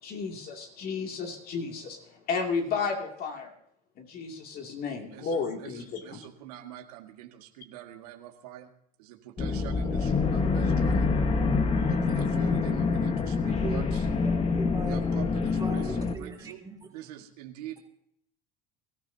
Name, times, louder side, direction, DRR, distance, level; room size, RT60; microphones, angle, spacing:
voice 1, 0.0-2.0 2.3-3.5 4.0-6.2, left 5 dB, 50° left, 2 dB, 2.5 m, -33 dB
voice 2, 5.1-8.7 9.0-11.1 11.9-14.1 14.9-16.6 16.9-17.8, right 12 dB, 90° right, 3 dB, 1.8 m, -44 dB
sound 1, 9.4-16.2, left 4 dB, 30° left, 1.4 m, -26 dB
voice 3, 14.2-15.0 15.6-16.8, right 4 dB, 20° right, 0 dB, 3.5 m, -39 dB
23.0 x 14.0 x 2.8 m, 0.71 s
supercardioid pair, 100°, 19 cm